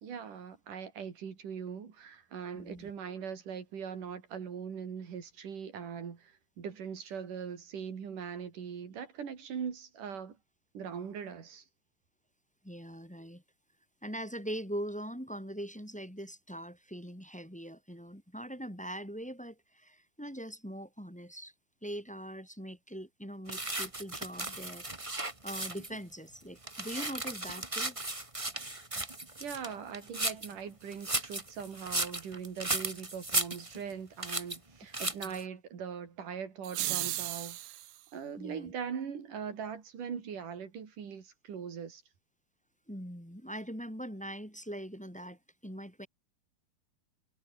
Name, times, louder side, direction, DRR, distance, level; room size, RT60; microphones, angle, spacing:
voice 1, 0.0-10.4 10.7-11.6 29.4-37.6 38.1-42.0, right 7 dB, 55° right, 4.5 m, -41 dB
voice 2, 2.5-2.9 12.6-13.4 14.0-21.5 21.8-24.9 25.4-28.0 35.2-35.4 38.4-38.7 42.9-46.1, equal, ahead, 2.2 m, -42 dB
sound 1, 23.5-26.0 26.4-30.5 30.9-33.9 34.2-34.6 34.9-35.4, right 2 dB, 15° right, 1.0 m, -35 dB
sound 2, 36.6-38.0, right 15 dB, 75° right, 2.7 m, -35 dB
omnidirectional pair, 4.5 m